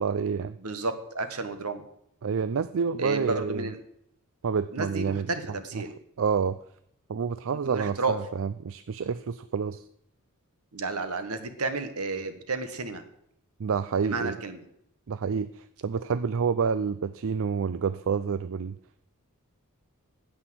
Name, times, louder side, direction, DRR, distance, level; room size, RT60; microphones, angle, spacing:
voice 1, 0.0-0.6 2.2-3.7 4.4-5.3 5.7-5.9 6.2-6.6 7.1-9.8 13.6-14.4 15.1-18.8, right 6 dB, 60° right, 13 dB, 0.4 m, -28 dB
voice 2, 0.6-1.8 3.0-3.8 4.7-5.9 7.6-8.1 10.7-13.0 14.0-14.6, right 3 dB, 75° right, 9 dB, 1.5 m, -31 dB
9.9 x 8.6 x 7.8 m, 0.74 s
head